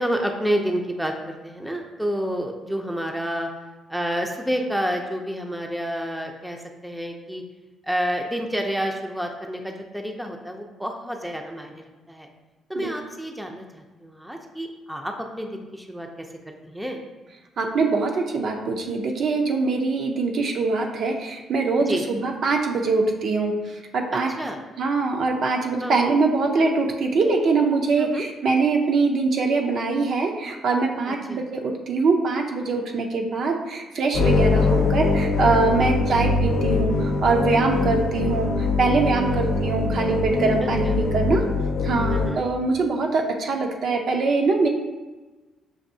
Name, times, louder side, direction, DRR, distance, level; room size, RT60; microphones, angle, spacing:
voice 1, 0.0-3.5 3.9-7.4 7.8-12.3 12.7-16.3 16.6-17.0 21.9-22.1 24.4-24.6 25.8-26.0 28.0-28.2 31.1-31.4 34.5-34.7 35.8-35.9 37.7-37.8 39.3-39.4 40.6-41.0 42.1-42.4, equal, 5° right, 2 dB, 0.5 m, -29 dB
voice 2, 17.6-24.3 24.8-41.4 41.8-44.7, right 3 dB, 60° right, 2 dB, 0.5 m, -23 dB
sound 1, 34.1-42.3, left 3 dB, 85° left, 0.6 m, -23 dB
6.4 x 2.6 x 2.6 m, 1.2 s
cardioid pair, 90°, 0 cm